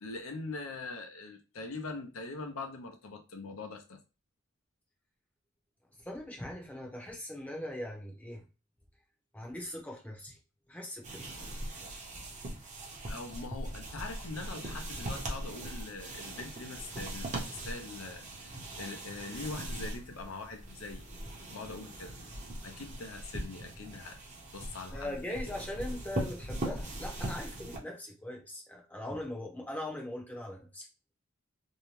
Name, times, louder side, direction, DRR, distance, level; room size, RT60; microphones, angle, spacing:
voice 1, 0.0-4.0 13.1-21.1 21.5-22.1 22.6-24.2 24.5-25.5, left 3 dB, 75° left, 4 dB, 0.6 m, -42 dB
voice 2, 6.0-8.4 9.3-10.4 10.7-11.2 24.9-30.9, left 1 dB, 5° left, 0 dB, 0.6 m, -40 dB
sound 1, 11.0-27.8, right 1 dB, 35° right, 0.7 m, -40 dB
2.7 x 2.2 x 3.1 m, 0.32 s
head